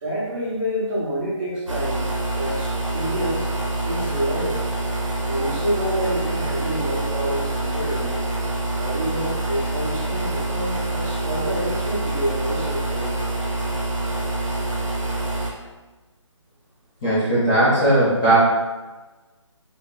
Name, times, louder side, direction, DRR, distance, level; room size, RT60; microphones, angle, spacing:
voice 1, 0.0-3.5 3.9-4.6 5.2-8.2 8.8-13.1, right 1 dB, 25° right, -9 dB, 1.1 m, -28 dB
sound 1, 1.7-15.5, right 2 dB, 75° right, 0.8 m, -26 dB
voice 2, 17.0-18.4, right 1 dB, 10° left, -14 dB, 0.4 m, -18 dB
2.7 x 2.1 x 3.8 m, 1.2 s
figure-of-eight pair, 150°, 16 cm